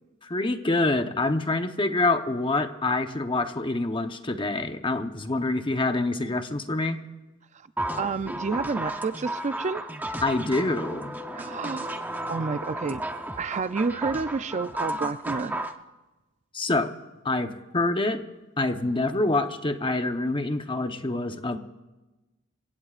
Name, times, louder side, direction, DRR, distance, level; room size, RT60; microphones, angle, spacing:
voice 1, 0.2-7.0 10.2-11.1 16.5-16.9 17.2-18.2 18.6-21.6, left 2 dB, 25° left, 7 dB, 0.9 m, -26 dB
sound 1, 7.8-15.8, right 1 dB, 10° right, 0.8 m, -33 dB
voice 2, 8.0-9.8 11.3-12.0 12.3-13.0 13.4-15.6, right 4 dB, 35° right, 12 dB, 0.4 m, -29 dB
30.0 x 16.5 x 2.5 m, 1.1 s
head